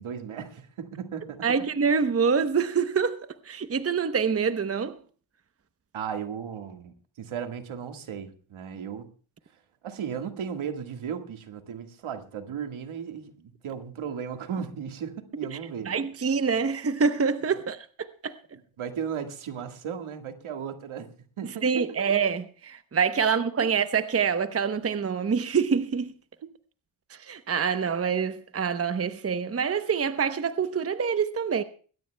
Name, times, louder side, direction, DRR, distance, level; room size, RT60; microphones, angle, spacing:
voice 1, 0.0-1.4 5.9-9.1 9.8-15.9 18.8-21.1 21.4-22.1 23.6-23.7 26.4-26.5, right 7 dB, 75° right, 1.8 m, -36 dB
voice 2, 1.4-5.0 15.5-15.6 15.9-18.4 21.6-26.1 27.1-31.6, right 6 dB, 30° right, 0.9 m, -26 dB
21.0 x 17.0 x 2.3 m
cardioid pair, 85°, 49 cm